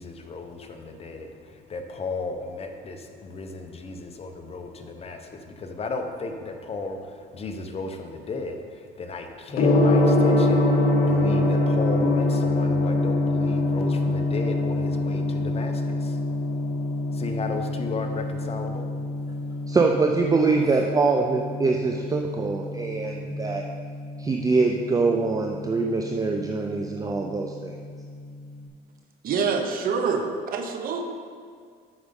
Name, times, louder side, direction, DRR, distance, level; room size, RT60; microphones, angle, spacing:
voice 1, 0.0-10.6 11.0-16.2 17.1-18.8, left 3 dB, 35° left, 5 dB, 0.8 m, -34 dB
Gong, 9.5-28.6, left 2 dB, 65° left, 1.1 m, -25 dB
voice 2, 19.7-23.6 24.2-27.7, right 4 dB, 20° right, 2 dB, 0.5 m, -24 dB
voice 3, 29.2-31.0, right 5 dB, 60° right, 5 dB, 0.9 m, -26 dB
8.2 x 5.1 x 5.2 m, 2.1 s
cardioid pair, 110°, 17 cm